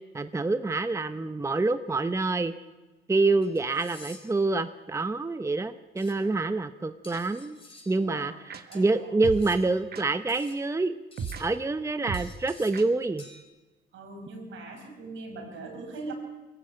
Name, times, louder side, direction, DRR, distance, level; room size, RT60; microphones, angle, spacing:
voice 1, 0.1-2.5 3.1-7.6 7.9-10.9 11.4-13.2, right 3 dB, 15° right, 11 dB, 0.8 m, -27 dB
sound 1, 2.2-2.3 3.4-4.5 6.0-6.2 7.0-8.0 8.7-9.8 10.3-10.6 11.1-11.6 12.1-12.9 13.2-13.4, left 2 dB, 25° left, 4.5 m, -50 dB
sound 2, 7.1-7.2 8.5-8.6 9.2-9.5 9.9-10.0 11.2-11.4 12.1-12.3 12.7-12.8, right 6 dB, 55° right, 1.7 m, -34 dB
voice 2, 7.9-8.3 8.7-9.1 13.9-16.1, right 3 dB, 75° right, 4 dB, 5.3 m, -41 dB
22.0 x 16.0 x 8.9 m, 1.2 s
cardioid pair, 90°, 20 cm